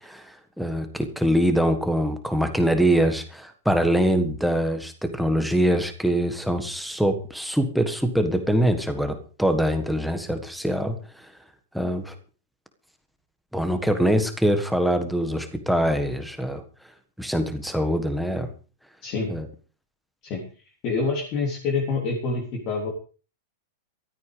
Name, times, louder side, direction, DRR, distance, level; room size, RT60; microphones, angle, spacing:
voice 1, 0.0-11.3 11.7-12.1 13.5-16.6 17.2-18.5 19.3-19.5, equal, ahead, 7 dB, 1.6 m, -24 dB
voice 2, 20.8-22.9, left 4 dB, 30° left, -1 dB, 3.5 m, -26 dB
15.0 x 13.5 x 5.1 m, 0.37 s
supercardioid pair, 175°, 0 cm